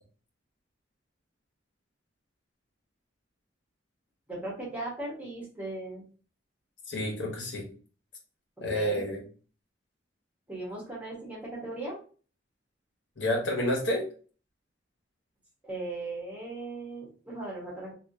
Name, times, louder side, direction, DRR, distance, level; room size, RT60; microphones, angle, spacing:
voice 1, 4.3-6.0 8.6-9.0 10.5-12.0 15.6-17.9, right 2 dB, 10° right, -5 dB, 1.4 m, -38 dB
voice 2, 6.9-7.7 8.6-9.2 13.2-14.0, left 1 dB, 85° left, -1 dB, 1.3 m, -29 dB
3.5 x 2.8 x 2.7 m, 0.39 s
head